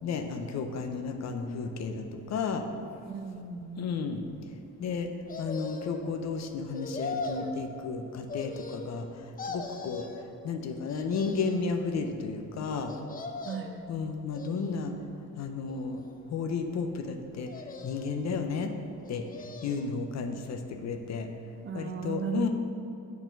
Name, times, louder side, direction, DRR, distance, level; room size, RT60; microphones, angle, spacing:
voice 1, 0.0-2.6 3.8-4.2 4.8-5.1 5.4-10.1 10.4-12.9 13.9-14.9 15.4-18.7 19.1-19.2 19.6-21.3 21.7-22.5, left 5 dB, 60° left, 5 dB, 0.7 m, -33 dB
voice 2, 3.0-3.9 13.4-13.9 21.6-22.5, right 6 dB, 45° right, 8 dB, 0.5 m, -35 dB
sound 1, 5.3-6.1 6.7-7.6 8.3-9.1 9.4-10.2 10.9-11.7 12.9-13.8 14.3-15.0 15.7-16.4 17.5-18.3 19.0-19.9 20.3-20.4, left 3 dB, 30° left, 0.6 m, -40 dB
6.8 x 4.2 x 6.0 m, 2.7 s
cardioid pair, 90°, 30 cm